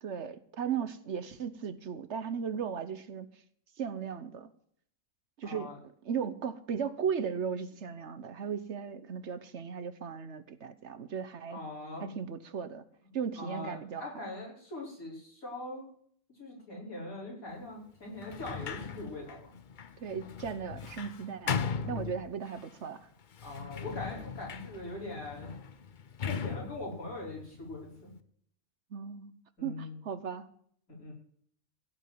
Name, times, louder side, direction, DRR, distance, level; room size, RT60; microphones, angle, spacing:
voice 1, 0.0-3.3 3.8-4.5 5.4-5.7 6.0-11.6 12.0-12.8 13.1-14.1 20.0-21.5 21.8-23.1 28.9-29.3 29.6-30.5, right 7 dB, 60° right, 1.1 m, -36 dB
voice 2, 5.4-5.8 11.5-12.1 13.4-15.9 16.3-19.5 23.4-25.5 26.3-28.1 29.6-30.0 30.9-31.1, left 2 dB, 85° left, 5.5 m, -42 dB
Sliding door, 18.2-22.7 23.3-28.2, left 6 dB, 45° left, 0.7 m, -39 dB
16.0 x 5.3 x 9.6 m
omnidirectional pair, 1.4 m